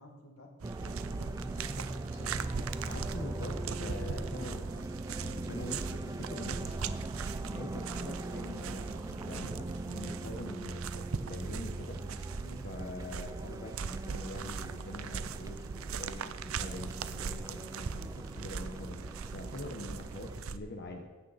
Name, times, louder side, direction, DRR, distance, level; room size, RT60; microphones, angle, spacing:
voice 1, 0.0-2.3 6.2-7.0 12.3-12.7, left 1 dB, 85° left, 0 dB, 2.3 m, -52 dB
sound 1, 0.6-20.4, right 2 dB, 15° right, 0.4 m, -41 dB
sound 2, 0.6-20.6, right 5 dB, 90° right, 0.6 m, -40 dB
voice 2, 2.8-4.8 5.2-6.6 7.5-12.0 12.6-21.1, left 1 dB, 50° left, 2 dB, 1.1 m, -44 dB
15.5 x 9.3 x 4.2 m, 1.3 s
head